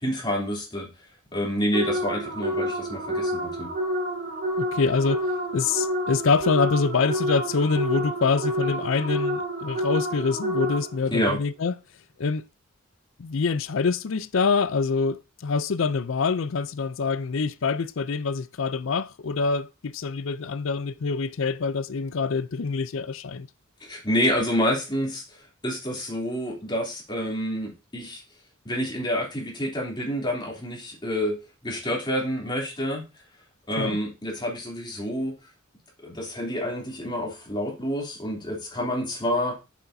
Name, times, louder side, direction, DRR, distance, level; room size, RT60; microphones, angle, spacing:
voice 1, 0.0-0.9 1.3-3.7 11.1-11.4 23.8-25.2 25.6-28.2 28.6-31.4 31.6-33.0 33.7-35.4 36.0-39.6, equal, 20° left, 3.0 m, -28 dB
sound 1, 1.7-11.1, equal, 50° right, 2.4 m, -29 dB
voice 2, 4.6-5.3 5.5-11.7 12.2-12.4 13.2-23.5 33.8-34.0, left 4 dB, 65° left, 0.5 m, -25 dB
8.1 x 7.2 x 2.7 m
head